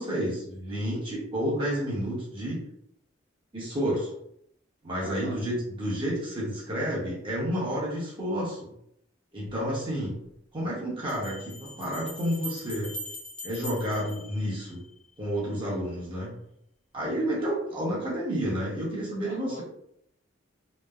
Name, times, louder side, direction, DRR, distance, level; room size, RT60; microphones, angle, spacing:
voice 1, 0.0-2.6 3.5-4.1 4.8-8.7 9.3-10.1 10.5-12.9 13.4-14.8 15.2-16.3 16.9-19.6, equal, 25° right, -6 dB, 0.8 m, -30 dB
voice 2, 5.0-5.4 19.2-19.6, right 1 dB, 55° right, -10 dB, 0.9 m, -43 dB
sound 1, 9.5-9.6 11.1-15.1, equal, 5° left, 0.4 m, -42 dB
2.9 x 2.0 x 2.3 m, 0.73 s
head